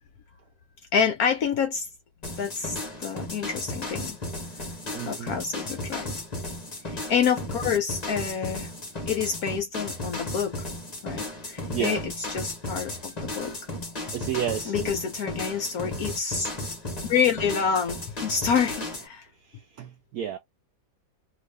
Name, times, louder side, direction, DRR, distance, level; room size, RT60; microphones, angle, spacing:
voice 1, 0.9-1.9 2.4-4.2 5.1-6.1 6.9-8.7 9.1-10.5 11.0-13.5 14.7-16.5 17.1-19.3, left 7 dB, 70° left, 0.9 m, -27 dB
sound 1, 2.2-19.1, left 1 dB, 30° left, 0.8 m, -35 dB
voice 2, 4.9-5.3 11.7-12.0 14.1-14.9 19.4-20.4, right 10 dB, 70° right, 1.0 m, -31 dB
2.9 x 2.5 x 3.3 m
omnidirectional pair, 2.0 m